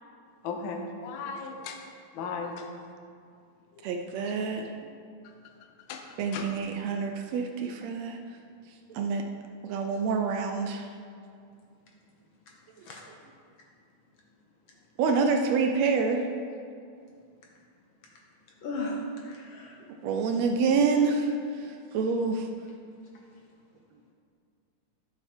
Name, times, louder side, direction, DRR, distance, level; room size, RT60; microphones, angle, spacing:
voice 1, 0.4-1.8 2.1-2.7 5.9-6.0 6.3-6.5, left 5 dB, 85° left, 3 dB, 1.0 m, -36 dB
voice 2, 3.8-4.7 6.2-8.2 8.9-9.2 9.6-10.9 15.0-16.3 20.0-22.5, right 4 dB, 75° right, 4 dB, 1.6 m, -27 dB
voice 3, 18.6-19.8, left 1 dB, 65° left, -1 dB, 1.2 m, -35 dB
11.5 x 7.4 x 4.4 m, 2.3 s
omnidirectional pair, 3.5 m